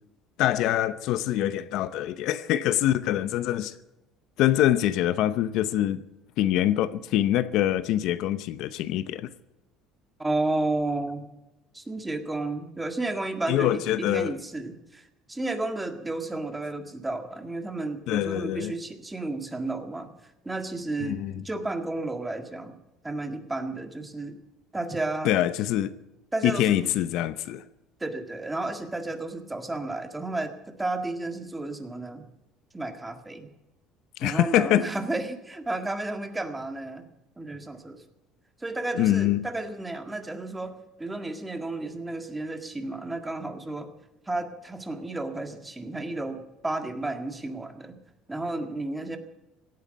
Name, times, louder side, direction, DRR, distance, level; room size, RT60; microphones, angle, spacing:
voice 1, 0.4-3.7 4.4-6.0 6.4-9.3 13.5-14.4 18.1-18.7 21.1-21.3 25.2-25.9 26.4-27.6 34.2-34.9 39.0-39.5, left 13 dB, 70° left, 0.8 m, -24 dB
voice 2, 10.2-11.3 11.7-20.1 20.4-22.8 23.0-24.4 24.7-25.3 26.3-26.9 28.0-32.2 32.7-33.5 34.2-37.1 37.4-38.0 38.6-43.9 44.3-48.0 48.3-49.2, right 2 dB, 10° right, 1.8 m, -32 dB
17.5 x 9.5 x 8.1 m
cardioid pair, 125°, 0 cm